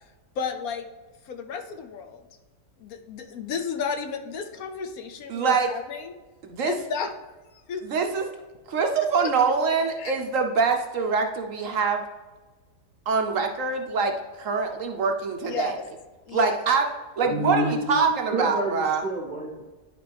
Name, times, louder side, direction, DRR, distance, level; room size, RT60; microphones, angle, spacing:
voice 1, 0.4-0.9 1.2-2.3 2.8-6.1 6.6-7.1 7.5-8.1 9.2-9.3 10.0-10.1 15.4-15.8 16.3-16.6, left 6 dB, 65° left, 6 dB, 1.1 m, -33 dB
voice 2, 5.3-5.7 6.4-6.7 7.8-8.3 8.7-12.0 13.1-15.7 16.3-16.8 17.2-19.0, right 5 dB, 60° right, 4 dB, 1.0 m, -24 dB
voice 3, 17.2-19.6, right 1 dB, 35° right, -2 dB, 0.8 m, -29 dB
10.5 x 5.1 x 3.4 m, 1.2 s
omnidirectional pair, 1.8 m